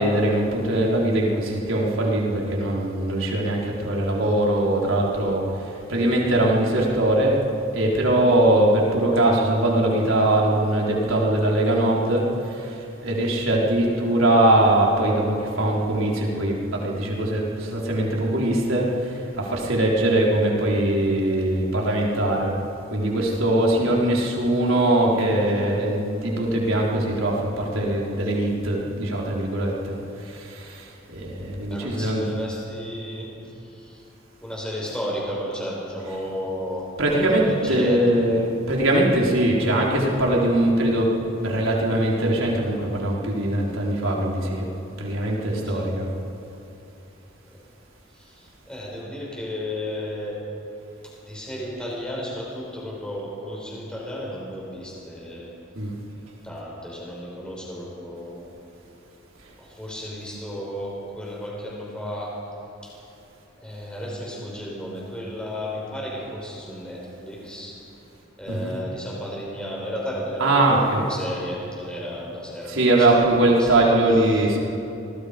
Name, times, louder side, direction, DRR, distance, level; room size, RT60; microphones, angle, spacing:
voice 1, 0.0-7.4 7.7-22.5 22.9-32.2 37.0-37.4 37.7-44.7 45.0-46.1 55.7-55.9 68.5-68.7 70.4-71.0 72.7-74.6, right 1 dB, 85° right, -2 dB, 4.1 m, -21 dB
voice 2, 31.7-34.0 34.4-38.2 45.6-45.9 48.1-50.4 51.0-55.5 56.4-58.5 59.6-62.4 62.8-62.9 63.6-67.8 68.4-73.8 74.3-74.4, equal, 5° left, -4 dB, 5.8 m, -33 dB
26.5 x 20.0 x 5.2 m, 2.8 s
head